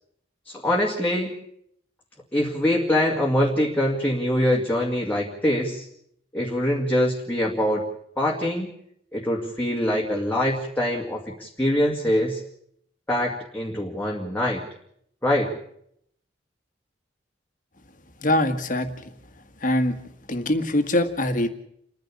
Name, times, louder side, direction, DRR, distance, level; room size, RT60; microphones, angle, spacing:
voice 1, 0.5-1.4 2.3-5.8 6.3-7.9 8.2-8.7 9.1-12.4 13.1-14.6 15.2-15.6, left 1 dB, 10° left, -2 dB, 2.2 m, -24 dB
voice 2, 18.2-19.1 19.6-20.0 20.3-21.5, left 1 dB, 50° left, 9 dB, 1.8 m, -23 dB
29.0 x 10.5 x 8.5 m, 0.70 s
head